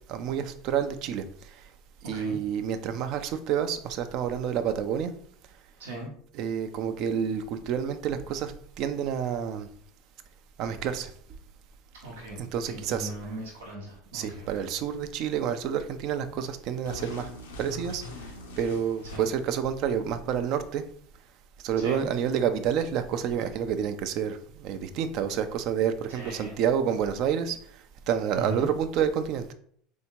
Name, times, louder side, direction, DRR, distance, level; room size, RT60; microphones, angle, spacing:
voice 1, 0.1-1.7 2.0-5.1 6.3-9.7 10.6-11.1 12.4-13.4 14.1-17.3 17.6-18.0 18.6-20.8 21.6-27.6 28.1-29.5, right 8 dB, 60° right, 0.5 m, -29 dB
voice 2, 2.0-2.4 5.8-6.1 12.0-14.7 19.0-19.3 21.8-22.1 26.1-26.6 28.3-28.7, right 1 dB, 90° right, 0.9 m, -38 dB
sound 1, 16.8-19.5, left 2 dB, 90° left, 0.8 m, -41 dB
3.5 x 2.7 x 4.4 m
hypercardioid pair, 90°, 0 cm